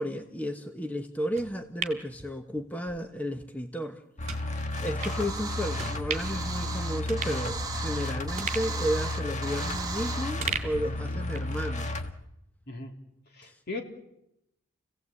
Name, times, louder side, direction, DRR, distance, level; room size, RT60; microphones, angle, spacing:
voice 1, 0.0-4.0 4.8-11.9 13.5-13.6, equal, 10° left, 6 dB, 1.0 m, -33 dB
sound 1, 1.4-3.0 3.4-3.5 4.3-4.4 5.0-5.2 5.8-6.4 6.7-6.8 7.1-8.0 8.4-10.0 10.4-11.6 11.9-12.0, right 5 dB, 35° right, 2.6 m, -37 dB
sound 2, 4.2-12.1, left 2 dB, 35° left, 1.6 m, -33 dB
sound 3, 4.8-10.3, right 4 dB, 20° right, 1.6 m, -37 dB
voice 2, 13.3-13.8, left 3 dB, 50° left, 3 dB, 3.2 m, -38 dB
29.0 x 16.5 x 8.4 m, 0.86 s
head